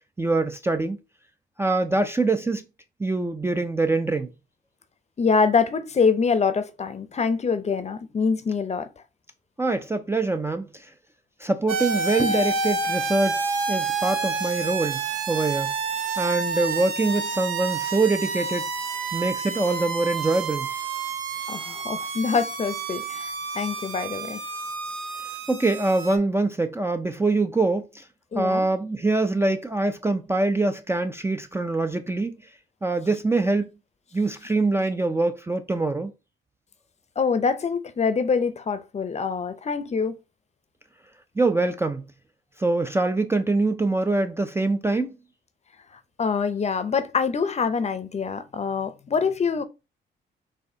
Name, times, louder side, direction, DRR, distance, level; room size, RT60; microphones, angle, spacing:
voice 1, 0.2-1.0 1.6-2.6 3.0-4.3 9.6-10.9 11.4-13.4 13.7-15.7 16.2-18.7 19.1-20.7 25.5-28.0 28.3-32.4 32.8-33.7 34.1-36.1 41.4-42.1 42.6-45.1, right 2 dB, 10° right, 0.4 m, -24 dB
voice 2, 5.2-8.9 21.5-24.4 28.3-28.7 37.2-40.2 46.2-49.6, left 5 dB, 35° left, 0.6 m, -25 dB
sound 1, 11.7-26.2, right 4 dB, 80° right, 0.8 m, -29 dB
4.2 x 2.7 x 3.8 m
cardioid pair, 90°, 20 cm